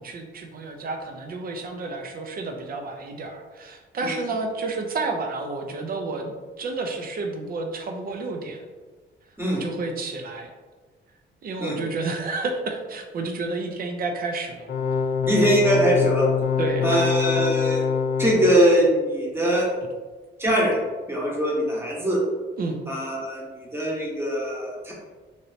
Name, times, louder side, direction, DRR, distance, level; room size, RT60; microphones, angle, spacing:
voice 1, 0.0-8.6 9.5-10.5 11.4-14.7 16.6-17.0 22.6-22.8, right 3 dB, 50° right, 4 dB, 0.6 m, -30 dB
sound 1, 14.7-18.6, left 6 dB, 70° left, 0.6 m, -24 dB
voice 2, 15.3-16.3 16.8-17.8 18.2-19.7 20.4-20.8 21.1-22.2 22.9-24.9, right 1 dB, 10° right, -4 dB, 1.0 m, -22 dB
3.2 x 2.7 x 2.7 m, 1.4 s
cardioid pair, 90°, 20 cm